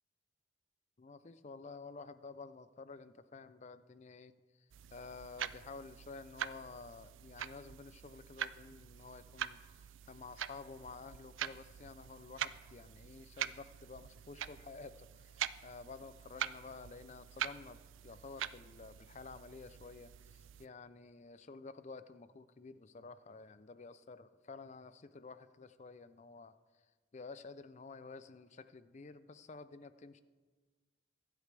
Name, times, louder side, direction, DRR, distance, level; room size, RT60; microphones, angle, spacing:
voice 1, 1.0-4.3 4.6-26.5 27.1-30.2, left 4 dB, 35° left, 13 dB, 0.5 m, -51 dB
sound 1, 4.7-20.7, right 10 dB, 80° right, 0.4 m, -45 dB
24.0 x 8.2 x 3.4 m, 1.4 s
head